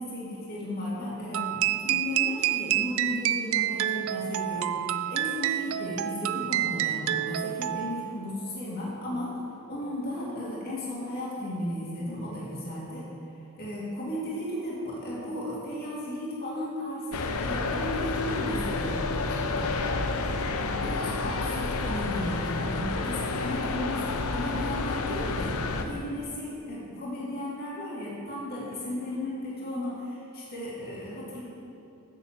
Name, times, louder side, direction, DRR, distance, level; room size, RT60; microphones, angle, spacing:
voice 1, 0.0-9.4 9.7-13.1 13.5-19.7 20.6-31.4, left 1 dB, 45° left, -7 dB, 2.0 m, -35 dB
sound 1, 1.3-8.2, right 13 dB, 65° right, 0.3 m, -28 dB
sound 2, 17.1-25.8, left 3 dB, 75° left, 0.6 m, -30 dB
7.0 x 7.0 x 7.2 m, 2.7 s
head